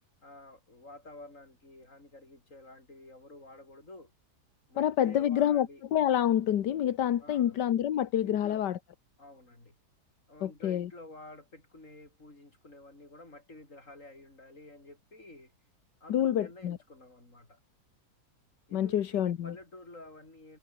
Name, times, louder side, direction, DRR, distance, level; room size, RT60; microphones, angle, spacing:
voice 1, 0.2-4.1 4.7-5.8 7.2-7.6 8.2-8.6 9.2-9.8 10.3-15.5 16.0-17.6 18.7-20.6, left 2 dB, 45° left, 6.7 m, -50 dB
voice 2, 4.8-8.8 10.4-10.9 16.1-16.8 18.7-19.5, left 10 dB, 80° left, 1.7 m, -27 dB
omnidirectional pair, 1.8 m